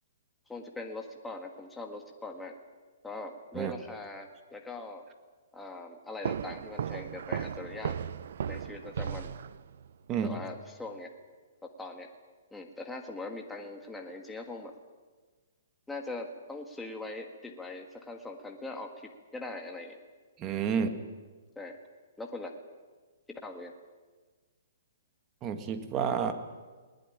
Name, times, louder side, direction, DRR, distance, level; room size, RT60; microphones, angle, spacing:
voice 1, 0.5-2.6 3.0-5.0 5.5-8.0 8.5-9.3 10.2-11.1 11.6-12.1 12.5-14.7 15.9-20.0 20.7-20.9 21.6-21.8 22.2-22.5 23.3-23.7, left 2 dB, 5° left, 2 dB, 1.7 m, -41 dB
sound 1, 6.2-9.9, right 8 dB, 60° right, 0.9 m, -36 dB
voice 2, 20.4-20.9 25.4-26.3, right 7 dB, 20° right, 8 dB, 1.9 m, -30 dB
20.5 x 20.0 x 10.0 m, 1.4 s
hypercardioid pair, 160°, 0 cm